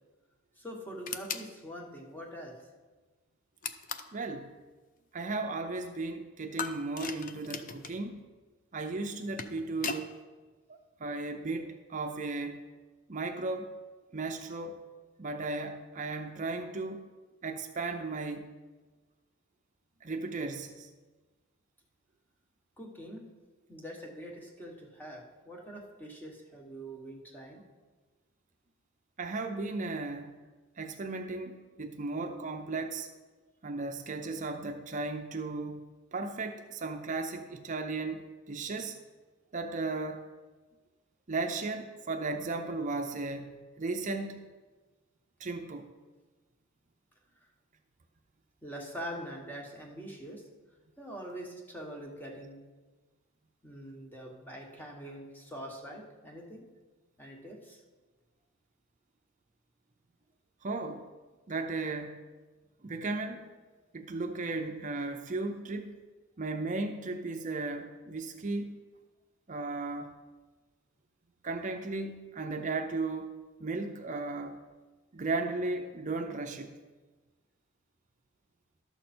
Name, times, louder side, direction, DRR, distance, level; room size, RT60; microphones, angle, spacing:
voice 1, 0.6-2.6 22.8-23.3 23.7-27.6 48.6-50.4 51.0-52.6 53.6-56.6 57.2-57.8, equal, 10° left, 0 dB, 1.4 m, -44 dB
sound 1, 1.1-1.5 3.6-4.2 6.6-8.0 9.1-10.1, left 5 dB, 40° left, 0.5 m, -38 dB
voice 2, 4.1-4.6 5.1-8.3 8.7-10.2 10.7-12.6 13.1-13.8 14.1-14.9 15.2-17.0 17.4-18.5 20.0-20.9 29.2-30.3 30.8-33.1 33.6-35.9 36.1-39.0 39.5-40.3 41.3-44.4 45.4-45.9 60.6-61.1 61.5-62.2 62.8-63.5 63.9-65.9 66.4-68.8 69.5-70.1 71.4-73.3 73.6-74.6 75.1-76.8, right 3 dB, 35° right, 5 dB, 0.6 m, -35 dB
12.0 x 6.8 x 4.4 m, 1.3 s
head